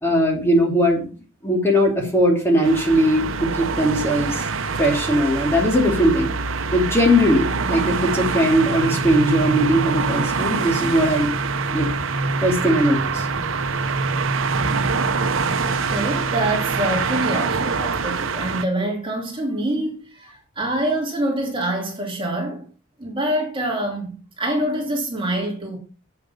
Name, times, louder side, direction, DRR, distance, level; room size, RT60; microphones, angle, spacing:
voice 1, 0.0-1.0 1.4-4.5 4.8-6.3 6.7-11.3 11.7-11.9 12.4-13.3, equal, 10° left, 2.6 m, -19 dB
sound 1, 2.6-18.6, right 4 dB, 75° right, 0.8 m, -24 dB
voice 2, 15.6-22.7 23.0-25.8, right 1 dB, 25° right, 2.6 m, -25 dB
8.0 x 7.2 x 5.4 m
head